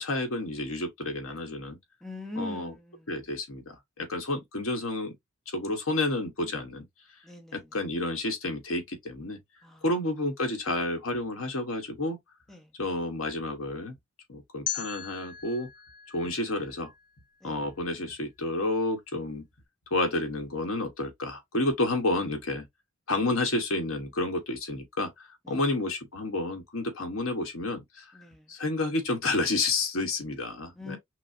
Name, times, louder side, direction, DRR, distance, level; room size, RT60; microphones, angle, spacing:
voice 1, 0.0-1.8 2.4-2.7 3.1-5.1 5.5-6.8 7.5-9.4 9.8-12.2 12.8-13.9 14.3-15.7 16.1-16.9 17.4-19.4 19.9-22.6 23.1-25.1 25.5-28.0 28.5-31.0, left 2 dB, 85° left, 1.2 m, -30 dB
voice 2, 2.0-3.3 7.2-7.8 9.6-9.8 12.5-12.7 17.4-17.6 25.4-25.6 28.1-28.5 30.7-31.0, left 2 dB, ahead, 0.8 m, -42 dB
sound 1, 14.7-17.6, left 9 dB, 40° left, 0.7 m, -39 dB
6.0 x 2.1 x 2.6 m
head